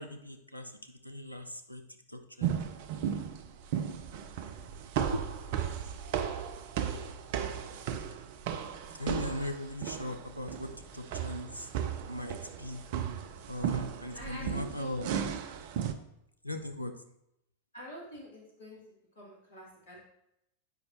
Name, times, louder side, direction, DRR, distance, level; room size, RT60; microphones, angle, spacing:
voice 1, 0.0-1.8 2.1-2.5 5.1-5.2 9.0-11.7 12.1-12.8 13.5-15.1 16.4-16.9, left 1 dB, 90° left, 6 dB, 0.6 m, -39 dB
sound 1, 2.4-15.9, right 8 dB, 50° right, 0.5 m, -35 dB
voice 2, 14.1-15.0 17.7-18.8 19.2-20.0, equal, 65° left, -4 dB, 2.4 m, -46 dB
8.2 x 5.2 x 2.9 m, 0.80 s
figure-of-eight pair, 90°, 0 cm